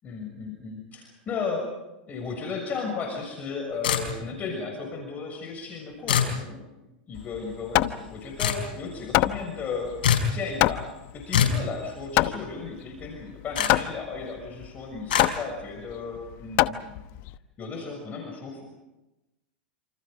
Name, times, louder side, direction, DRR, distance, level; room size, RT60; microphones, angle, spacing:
voice 1, 0.0-1.7 2.1-10.0 10.3-10.9 11.1-17.0 17.6-18.6, left 4 dB, 30° left, 2 dB, 6.6 m, -35 dB
sound 1, 3.8-4.4 6.1-6.4 8.4-8.6 10.0-10.3 11.3-11.6 13.5-13.7 15.1-15.3, left 8 dB, 75° left, 5.4 m, -23 dB
Hammer, 7.2-17.4, left 16 dB, 50° left, 1.1 m, -27 dB
28.0 x 27.5 x 5.2 m, 1.0 s
hypercardioid pair, 120°, 5 cm